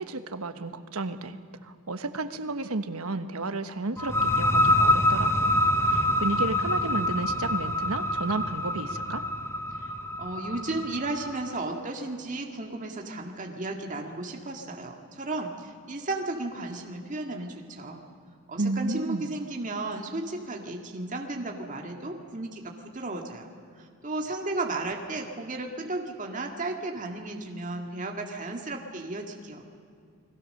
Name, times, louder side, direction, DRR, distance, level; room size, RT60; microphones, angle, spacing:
voice 1, 0.0-9.2 18.6-19.3, right 2 dB, 85° right, 9 dB, 1.3 m, -32 dB
sound 1, 4.0-11.5, left 1 dB, 10° left, 0.8 m, -26 dB
voice 2, 10.2-18.0 18.5-23.5 23.8-29.6, right 2 dB, 35° right, 2 dB, 1.9 m, -34 dB
29.5 x 21.0 x 6.6 m, 2.3 s
head